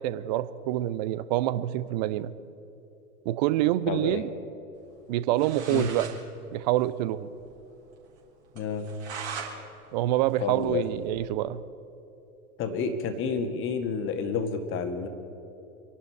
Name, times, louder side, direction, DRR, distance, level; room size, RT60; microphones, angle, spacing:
voice 1, 0.0-2.3 3.3-4.3 5.1-6.1 6.5-7.3 9.9-11.6, right 14 dB, 30° right, 15 dB, 0.5 m, -26 dB
voice 2, 3.9-4.2 5.7-5.9 8.5-8.9 10.4-10.9 12.6-15.1, left 5 dB, 25° left, 7 dB, 1.8 m, -30 dB
sound 1, 5.1-5.2 5.4-6.2 6.5-6.6 6.8-6.9 7.4-7.5 7.8-7.9 8.6-9.5 9.9-11.3, right 6 dB, 45° right, 3.8 m, -40 dB
26.5 x 11.5 x 4.6 m, 3.0 s
figure-of-eight pair, 95°, 45 cm